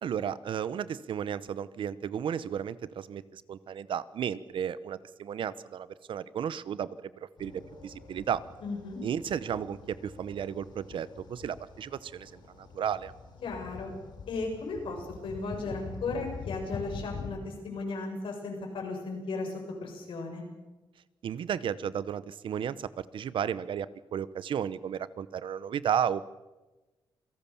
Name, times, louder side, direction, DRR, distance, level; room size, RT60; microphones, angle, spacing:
voice 1, 0.0-6.9 7.4-7.5 7.8-8.4 9.0-13.1 21.2-26.2, right 8 dB, 70° right, 17 dB, 0.9 m, -33 dB
sound 1, 7.4-17.3, left 5 dB, 55° left, 7.1 m, -45 dB
voice 2, 8.6-9.0 13.4-13.9 14.3-20.4, left 3 dB, 80° left, 2 dB, 6.9 m, -36 dB
27.5 x 17.5 x 7.1 m, 1.1 s
cardioid pair, 110°, 9 cm